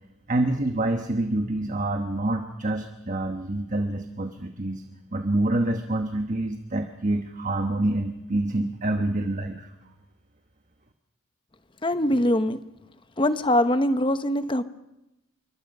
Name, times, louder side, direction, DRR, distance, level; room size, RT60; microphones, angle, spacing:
voice 1, 0.3-4.8 5.1-9.7, right 1 dB, 35° right, 5 dB, 1.2 m, -27 dB
voice 2, 11.8-12.6 13.2-14.6, left 1 dB, 25° left, 11 dB, 0.9 m, -22 dB
26.5 x 23.5 x 5.5 m, 0.93 s
head